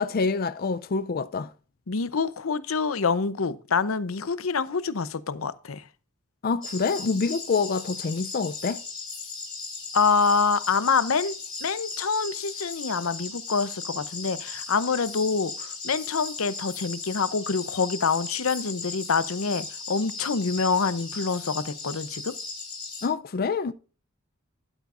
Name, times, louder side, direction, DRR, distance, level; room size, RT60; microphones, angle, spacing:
voice 1, 0.0-1.5 6.4-8.8 23.0-23.7, left 4 dB, 45° left, 0.5 m, -26 dB
voice 2, 1.9-5.8 9.9-11.4 11.6-22.3, left 5 dB, 85° left, 0.7 m, -26 dB
sound 1, 6.6-23.1, left 4 dB, 25° left, 5.7 m, -37 dB
12.0 x 9.0 x 2.5 m
head